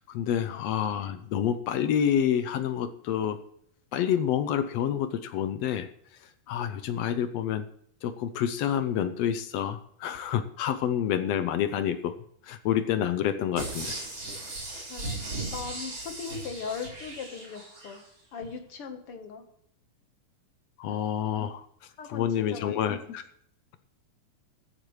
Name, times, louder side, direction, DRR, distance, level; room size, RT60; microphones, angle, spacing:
voice 1, 0.0-3.4 3.9-5.9 6.5-7.7 8.0-12.2 12.4-13.9 20.8-21.7 22.1-23.2, left 9 dB, 75° left, 10 dB, 1.6 m, -28 dB
sound 1, 13.6-18.0 18.4-18.5, right 2 dB, 40° right, 4.6 m, -37 dB
voice 2, 14.9-18.0 18.3-19.4 20.8-21.1 22.0-23.1, left 6 dB, 55° left, 6 dB, 2.0 m, -39 dB
15.0 x 14.0 x 3.2 m, 0.67 s
omnidirectional pair, 3.5 m